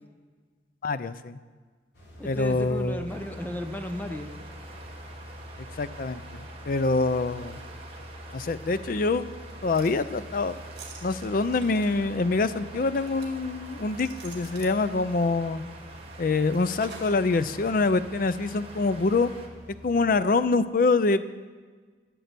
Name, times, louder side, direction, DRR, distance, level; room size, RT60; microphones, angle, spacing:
voice 1, 0.8-1.4 2.2-3.0 5.8-7.6 8.3-9.3 9.6-10.6 11.0-15.6 16.2-19.3 19.8-21.2, left 3 dB, 50° left, 13 dB, 0.4 m, -25 dB
sound 1, 1.9-20.1, left 1 dB, 70° left, 3.1 m, -46 dB
voice 2, 2.2-4.4, equal, 10° left, 6 dB, 0.6 m, -34 dB
sound 2, 3.1-19.5, right 3 dB, 30° right, 1.5 m, -47 dB
sound 3, 9.5-10.0 10.8-11.9 13.0-13.3 14.0-14.8 16.8-17.3 17.7-17.8, right 5 dB, 65° right, 2.1 m, -47 dB
12.5 x 7.6 x 6.8 m, 1.5 s
head